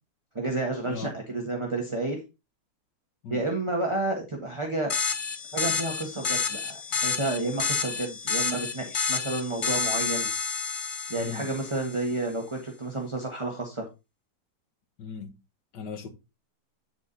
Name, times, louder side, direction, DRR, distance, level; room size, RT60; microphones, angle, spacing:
voice 1, 0.3-2.2 3.3-4.9 5.5-10.3 11.1-13.8, right 2 dB, 15° right, 1.5 m, -30 dB
sound 1, 4.9-12.1, left 5 dB, 50° left, 0.6 m, -30 dB
voice 2, 11.1-11.5 15.0-15.4 15.7-16.1, left 6 dB, 70° left, 1.9 m, -37 dB
9.6 x 4.8 x 4.0 m
omnidirectional pair, 1.9 m